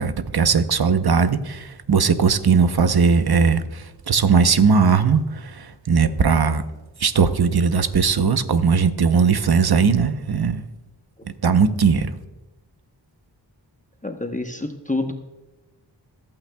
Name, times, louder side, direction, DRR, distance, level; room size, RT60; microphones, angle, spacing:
voice 1, 0.0-6.6 7.0-10.6 11.4-12.1, right 5 dB, 55° right, 10 dB, 0.9 m, -19 dB
voice 2, 14.0-15.1, left 2 dB, 15° left, 5 dB, 0.9 m, -27 dB
26.0 x 8.8 x 2.3 m, 1.1 s
wide cardioid pair, 50°, 44 cm